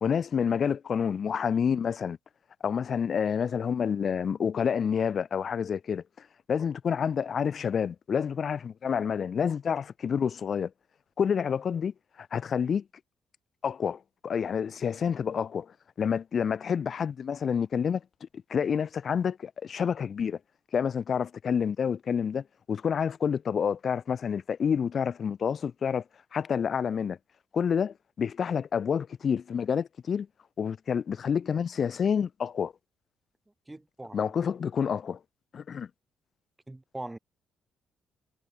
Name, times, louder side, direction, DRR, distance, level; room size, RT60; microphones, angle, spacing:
voice 1, 0.0-2.2 2.6-6.0 6.5-10.7 11.2-12.8 13.6-15.7 16.0-18.0 18.5-20.4 20.7-26.0 26.3-27.2 27.5-30.3 30.6-32.7 34.1-35.2 35.5-35.9, left 7 dB, 50° left, 1.4 m, -28 dB
voice 2, 33.7-34.3 36.7-37.2, right 2 dB, 15° right, 5.0 m, -41 dB
cardioid pair, 90°, 0 cm